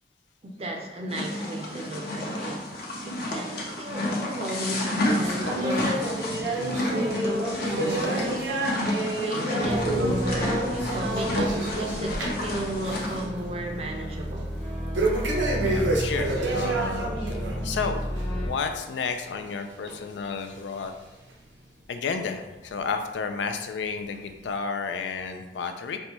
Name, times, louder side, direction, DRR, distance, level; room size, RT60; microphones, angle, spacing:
voice 1, 0.4-2.7 3.0-8.6 9.1-14.5, right 1 dB, 35° right, 3 dB, 0.5 m, -34 dB
sound 1, 1.1-13.2, left 1 dB, 55° left, 0.8 m, -31 dB
sound 2, 5.0-12.5 12.8-13.2 13.5-13.6 14.9-17.6 18.0-18.2 18.9-19.0 19.9-20.0 20.8-20.9, right 1 dB, 80° right, 0.7 m, -28 dB
sound 3, 9.6-18.5, equal, 5° left, 0.7 m, -33 dB
voice 2, 15.6-20.9 21.9-26.0, left 5 dB, 80° left, 7 dB, 0.4 m, -32 dB
5.3 x 2.2 x 3.0 m, 1.1 s
head